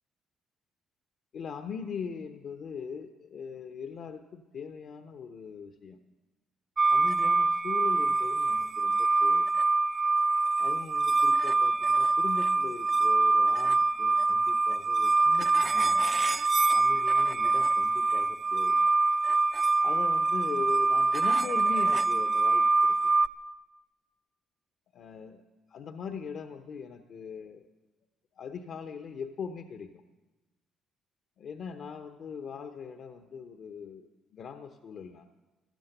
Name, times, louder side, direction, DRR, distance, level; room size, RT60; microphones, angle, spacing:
voice 1, 1.3-6.0 6.9-9.5 10.6-16.1 16.7-18.8 19.8-23.0 24.9-25.4 25.7-27.6 28.4-30.0 31.4-35.3, left 6 dB, 60° left, 7 dB, 0.9 m, -40 dB
sound 1, 6.8-23.3, right 3 dB, 40° right, 0.8 m, -25 dB
15.5 x 12.5 x 6.8 m, 1.1 s
hypercardioid pair, 50°, 0 cm